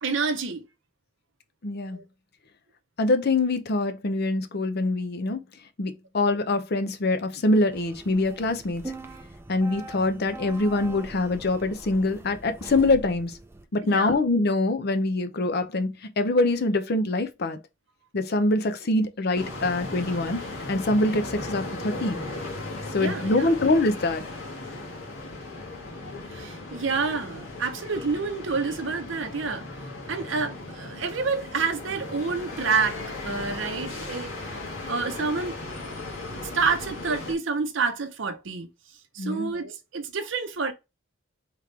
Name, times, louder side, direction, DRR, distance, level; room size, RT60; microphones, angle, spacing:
voice 1, 0.0-0.6 1.9-2.0 13.8-14.2 23.0-23.5 26.3-29.7 30.1-33.0 33.2-34.3 34.8-35.6 36.4-38.7 39.1-40.7, right 4 dB, 65° right, 0.7 m, -28 dB
voice 2, 1.6-2.0 3.0-5.4 5.8-8.8 9.5-13.3 13.7-17.6 18.1-20.4 20.7-22.2 22.9-24.2 39.2-39.5, left 2 dB, 55° left, 0.6 m, -24 dB
sound 1, 7.7-13.6, right 2 dB, 10° right, 0.4 m, -42 dB
sound 2, 19.3-37.3, left 2 dB, 85° left, 1.5 m, -37 dB
3.7 x 3.1 x 3.2 m
head